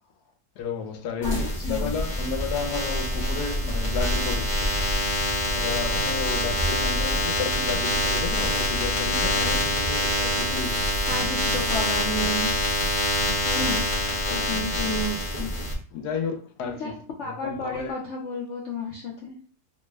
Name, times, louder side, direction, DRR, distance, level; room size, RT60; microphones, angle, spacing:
voice 1, 0.6-4.8 5.5-11.0 14.3-14.5 15.9-17.0 17.2-17.9, left 5 dB, 80° left, 1.1 m, -32 dB
voice 2, 1.2-1.9 11.1-12.5 13.4-13.8 14.3-15.5 16.8-16.9 17.2-19.4, left 1 dB, 65° left, 0.7 m, -31 dB
sound 1, 1.2-15.7, left 1 dB, 25° left, 0.8 m, -25 dB
3.0 x 2.1 x 3.2 m
omnidirectional pair, 1.7 m